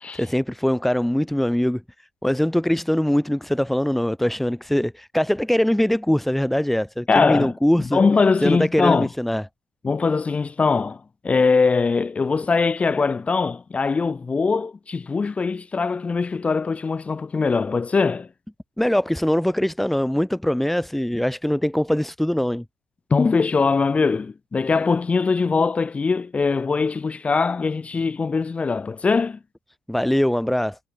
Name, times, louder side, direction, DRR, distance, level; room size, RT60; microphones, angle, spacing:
voice 1, 0.1-1.8 2.2-8.0 8.4-9.5 18.8-22.6 29.9-30.8, equal, 5° left, 1.9 m, -22 dB
voice 2, 7.1-9.1 9.8-18.3 23.1-29.4, left 4 dB, 30° left, 3.9 m, -21 dB
hypercardioid pair, 60°, 4 cm